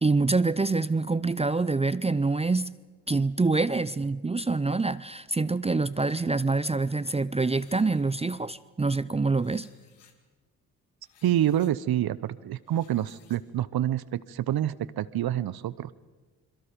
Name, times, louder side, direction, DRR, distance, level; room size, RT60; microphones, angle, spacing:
voice 1, 0.0-2.7 3.1-9.7, right 3 dB, 15° right, 17 dB, 0.6 m, -26 dB
sound 1, 7.4-8.3 9.4-10.1 11.0-11.7 12.5-13.4, left 8 dB, 75° left, 2.3 m, -60 dB
voice 2, 11.2-15.9, right 12 dB, 60° right, 18 dB, 0.8 m, -27 dB
27.5 x 22.5 x 5.2 m, 1.3 s
hypercardioid pair, 45°, 41 cm